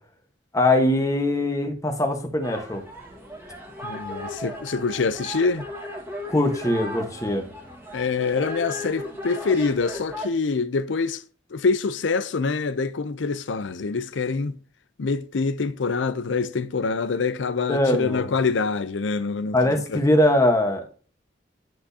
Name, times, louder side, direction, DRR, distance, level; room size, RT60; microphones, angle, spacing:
voice 1, 0.5-2.8 6.3-7.4 17.7-18.3 19.5-20.9, left 1 dB, 20° left, 1.2 m, -21 dB
sound 1, 2.4-10.3, left 1 dB, 15° right, 1.7 m, -36 dB
voice 2, 3.8-5.7 7.9-11.2 11.5-14.6 15.0-19.6 19.9-20.0, left 4 dB, 75° left, 0.5 m, -25 dB
10.0 x 6.1 x 2.8 m
head